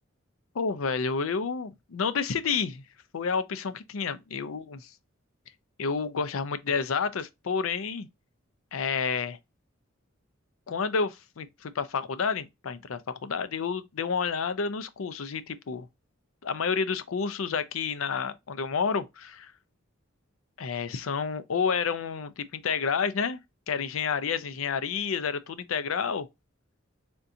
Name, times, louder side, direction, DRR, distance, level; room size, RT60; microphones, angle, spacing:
voice 1, 0.5-2.8 3.1-4.9 5.8-8.1 8.7-9.4 10.7-15.9 16.4-19.5 20.6-23.4 23.7-26.3, left 5 dB, 85° left, 0.5 m, -30 dB
3.6 x 2.5 x 2.7 m
head